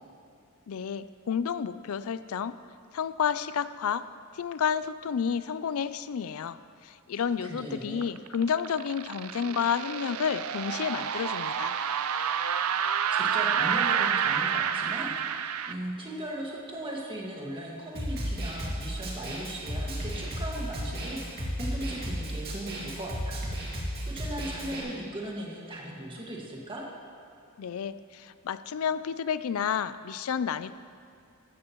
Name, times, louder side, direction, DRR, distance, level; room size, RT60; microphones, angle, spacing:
voice 1, 0.7-2.6 2.9-4.1 4.3-6.6 6.8-11.8 27.6-30.7, left 7 dB, 70° left, 14 dB, 0.4 m, -30 dB
voice 2, 7.4-8.0 13.1-26.8, right 1 dB, 25° right, -3 dB, 1.8 m, -38 dB
sound 1, 8.0-15.7, right 7 dB, 75° right, 0.5 m, -29 dB
Snare drum, 18.0-24.8, equal, 45° right, 2.3 m, -34 dB
14.0 x 13.0 x 3.1 m, 2.4 s
head